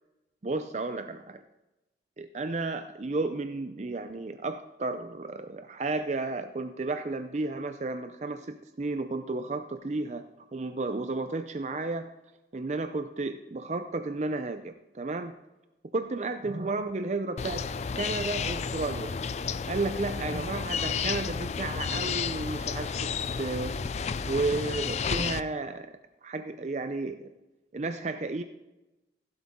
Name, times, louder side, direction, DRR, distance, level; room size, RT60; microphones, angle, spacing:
voice 1, 0.4-1.4 2.2-10.2 10.5-12.1 12.5-15.3 15.9-17.7 17.9-19.2 19.7-23.1 23.4-23.7 24.3-25.9 26.2-27.2 27.7-28.4, right 3 dB, 40° right, 9 dB, 0.5 m, -32 dB
sound 1, 17.4-25.4, left 6 dB, 35° left, 0.3 m, -32 dB
16.0 x 7.9 x 3.6 m, 0.99 s
head